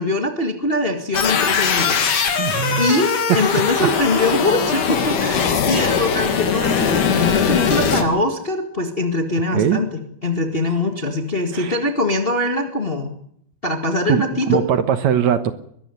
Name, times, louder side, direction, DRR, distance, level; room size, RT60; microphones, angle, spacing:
voice 1, 0.0-13.1 13.6-14.6, left 2 dB, 30° left, 4 dB, 1.0 m, -23 dB
sound 1, 1.1-8.0, left 6 dB, 60° left, 3.5 m, -20 dB
voice 2, 2.4-2.9 9.5-9.8 11.5-11.8 14.1-15.5, right 9 dB, 65° right, 10 dB, 1.9 m, -20 dB
22.0 x 14.0 x 9.6 m, 0.69 s
omnidirectional pair, 4.4 m